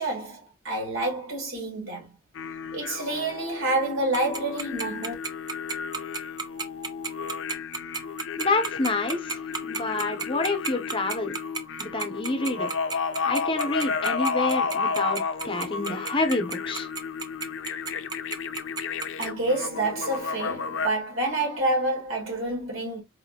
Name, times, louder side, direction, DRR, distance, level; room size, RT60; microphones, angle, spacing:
voice 1, 0.0-2.1 2.7-5.1 19.2-23.0, right 2 dB, 80° right, 2.0 m, -28 dB
sound 1, 2.3-20.9, left 5 dB, 65° left, 0.4 m, -32 dB
Tick-tock, 4.1-19.3, right 5 dB, 20° right, 0.3 m, -31 dB
voice 2, 8.4-11.4 11.8-12.7 13.3-16.9, left 2 dB, 25° left, 0.6 m, -28 dB
4.2 x 2.7 x 2.7 m
head